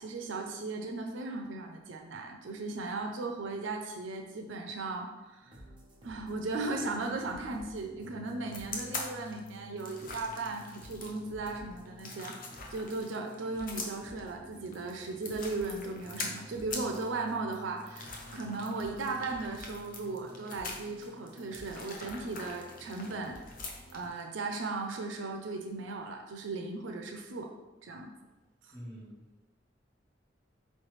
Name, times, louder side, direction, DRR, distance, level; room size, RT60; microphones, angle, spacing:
voice 1, 0.0-5.6 6.0-12.4 12.7-23.4 23.9-27.5 27.8-28.1, right 3 dB, 85° right, 3 dB, 0.5 m, -37 dB
sound 1, 5.4-24.1, equal, 25° right, 1.0 m, -52 dB
sound 2, 8.5-24.2, left 3 dB, 50° left, 0.6 m, -43 dB
voice 2, 28.7-29.5, equal, 15° left, -6 dB, 1.0 m, -47 dB
4.5 x 3.2 x 3.1 m, 1.1 s
head